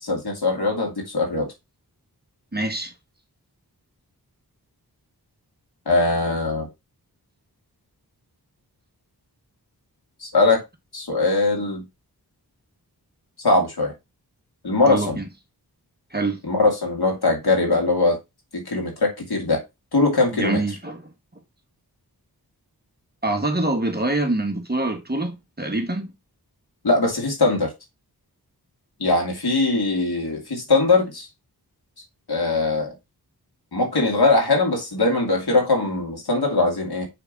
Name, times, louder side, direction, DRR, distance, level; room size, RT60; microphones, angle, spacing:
voice 1, 0.0-1.5 5.9-6.7 10.2-10.6 10.9-11.8 13.4-13.9 14.6-15.2 16.4-18.2 18.5-19.6 19.9-20.6 26.8-27.7 29.0-31.3 32.3-32.9 33.7-37.1, left 3 dB, 75° left, 2.5 m, -21 dB
voice 2, 2.5-2.9 14.8-15.2 16.1-16.4 20.3-21.0 23.2-26.1, right 2 dB, 25° right, 1.3 m, -25 dB
6.8 x 3.7 x 4.0 m
wide cardioid pair, 90°, 38 cm